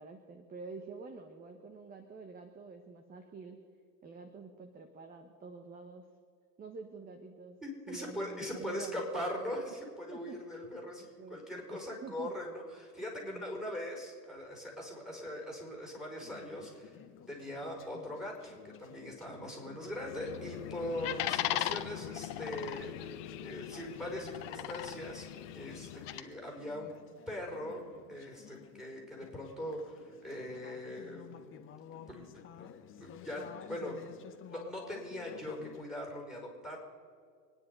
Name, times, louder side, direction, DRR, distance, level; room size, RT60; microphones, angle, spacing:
voice 1, 0.0-3.6 4.0-6.0 6.6-7.6 7.9-9.5 10.1-10.4 11.0-12.3 13.2-13.6, right 4 dB, 20° right, 6 dB, 1.2 m, -48 dB
voice 2, 7.6-17.0 17.3-25.3 25.5-26.9 27.3-31.7 32.1-32.2 32.6-32.7 33.0-33.4 33.7-34.0 34.5-36.8, left 1 dB, ahead, 0 dB, 5.1 m, -41 dB
Conversation / Chatter, 16.2-35.8, left 9 dB, 25° left, 1.0 m, -53 dB
sound 1, 19.9-26.2, left 13 dB, 45° left, 1.2 m, -39 dB
25.0 x 10.0 x 5.4 m, 2.2 s
hypercardioid pair, 115°, 49 cm